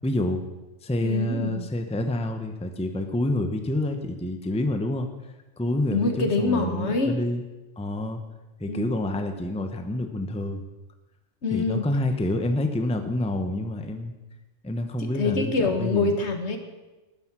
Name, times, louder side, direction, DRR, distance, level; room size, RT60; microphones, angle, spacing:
voice 1, 0.0-0.4 0.8-5.1 5.6-7.4 7.8-8.2 8.6-10.6 11.5-14.1 14.6-16.2, left 1 dB, 5° left, 6 dB, 0.8 m, -28 dB
voice 2, 1.0-1.6 5.9-7.2 8.7-8.9 11.4-11.8 15.0-16.6, left 3 dB, 65° left, 6 dB, 1.6 m, -25 dB
12.5 x 9.7 x 6.1 m, 1.1 s
omnidirectional pair, 1.3 m